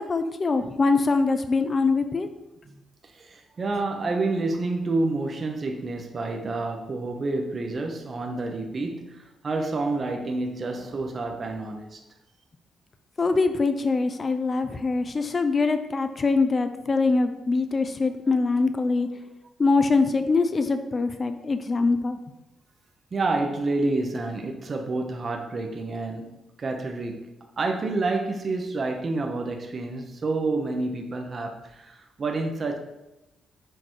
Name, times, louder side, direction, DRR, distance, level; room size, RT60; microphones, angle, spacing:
voice 1, 0.0-2.3 13.2-19.1 19.6-22.2, left 3 dB, 30° left, 0.6 m, -23 dB
voice 2, 3.0-12.0 23.1-32.8, right 3 dB, 40° right, 0.9 m, -29 dB
6.5 x 4.8 x 4.5 m
cardioid pair, 115°, 0 cm